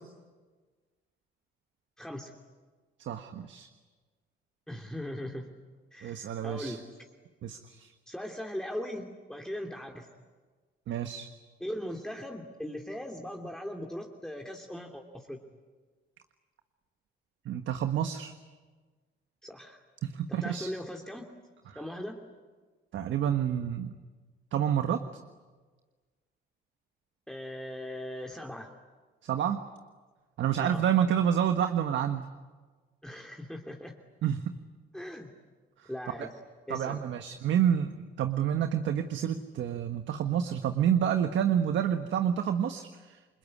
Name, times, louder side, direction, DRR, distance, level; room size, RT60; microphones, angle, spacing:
voice 1, 2.0-2.3 4.7-5.5 5.9-6.8 8.1-10.1 11.6-15.4 19.4-19.8 20.3-21.3 21.7-22.2 27.3-28.7 30.6-30.8 33.0-33.9 34.9-35.3 35.9-36.3 36.7-37.0, equal, 5° left, 1 dB, 2.8 m, -39 dB
voice 2, 3.0-3.7 6.0-6.8 7.4-7.9 10.9-11.3 17.4-18.3 20.0-20.7 22.9-23.9 24.5-25.0 29.2-29.6 30.4-32.2 34.2-34.4 35.8-35.9 36.2-36.3 36.7-43.2, right 9 dB, 70° right, 7 dB, 1.4 m, -28 dB
29.0 x 21.0 x 9.9 m, 1.4 s
cardioid pair, 90°, 20 cm